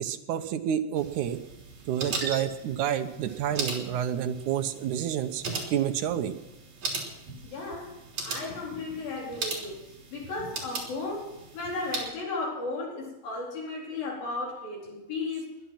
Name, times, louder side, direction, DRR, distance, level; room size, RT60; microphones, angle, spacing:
voice 1, 0.0-1.4 1.9-6.4, right 10 dB, 70° right, 8 dB, 2.1 m, -29 dB
sound 1, 1.0-12.1, right 4 dB, 50° right, 4.7 m, -38 dB
voice 2, 7.4-9.8 10.1-15.5, left 3 dB, 75° left, -2 dB, 5.9 m, -35 dB
20.5 x 11.5 x 5.9 m, 1.0 s
omnidirectional pair, 4.2 m